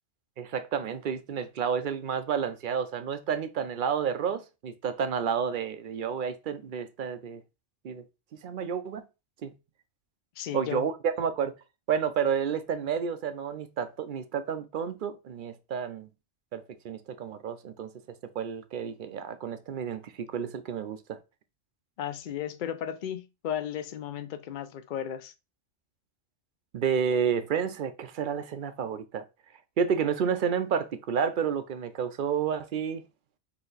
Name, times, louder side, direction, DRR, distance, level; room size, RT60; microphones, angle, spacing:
voice 1, 0.4-7.4 7.8-8.0 8.4-9.0 9.4-9.5 10.5-11.5 11.9-16.1 16.5-17.9 18.4-21.2 26.7-29.2 29.8-33.0, right 7 dB, 60° right, 0.6 m, -30 dB
voice 2, 10.4-10.9 22.0-25.3, left 10 dB, 55° left, 0.6 m, -34 dB
4.2 x 2.8 x 4.0 m
omnidirectional pair, 1.2 m